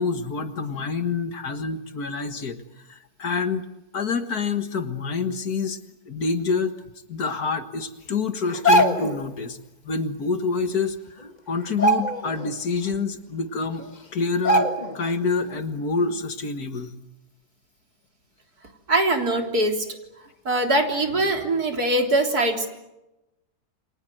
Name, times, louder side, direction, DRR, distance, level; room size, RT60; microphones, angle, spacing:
voice 1, 0.0-2.6 2.9-3.6 3.9-5.8 6.1-6.8 7.1-9.6 9.8-14.7 14.9-17.0, left 4 dB, 60° left, 8 dB, 2.1 m, -27 dB
sound 1, 8.5-9.2 10.7-10.8 11.1-11.3 11.7-12.5 12.9-13.0 13.8-13.9 14.4-15.1 15.4-15.6, right 1 dB, 25° left, 1.8 m, -21 dB
voice 2, 18.9-19.9 20.5-22.7, right 1 dB, 60° right, 3 dB, 4.1 m, -22 dB
29.5 x 24.0 x 7.8 m, 0.96 s
omnidirectional pair, 1.8 m